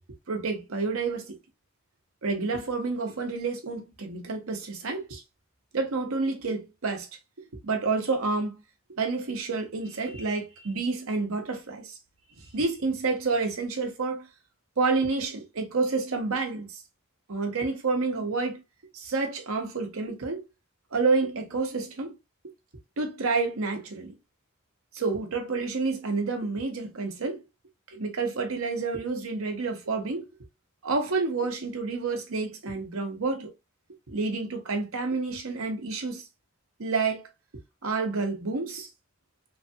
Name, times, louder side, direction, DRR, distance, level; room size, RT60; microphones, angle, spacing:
voice 1, 0.3-1.4 2.2-5.2 5.7-7.1 7.4-8.6 9.0-12.0 12.5-14.3 14.8-16.8 17.3-18.6 18.9-20.4 20.9-22.1 23.0-24.1 24.9-27.4 27.9-30.3 30.8-33.5 34.1-36.2 36.8-37.2 37.8-38.9, right 4 dB, 90° right, 0.8 m, -29 dB
3.3 x 2.3 x 2.7 m
head